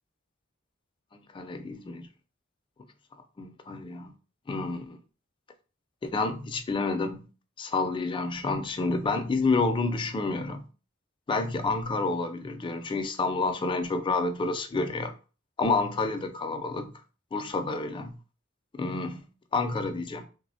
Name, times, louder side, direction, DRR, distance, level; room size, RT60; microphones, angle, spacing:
voice 1, 1.1-2.1 3.4-4.1 4.5-5.0 6.1-7.2 7.6-10.6 11.3-15.1 15.6-16.9 17.3-18.1 18.7-20.2, left 3 dB, 25° left, 0.3 m, -29 dB
3.3 x 2.1 x 2.6 m
head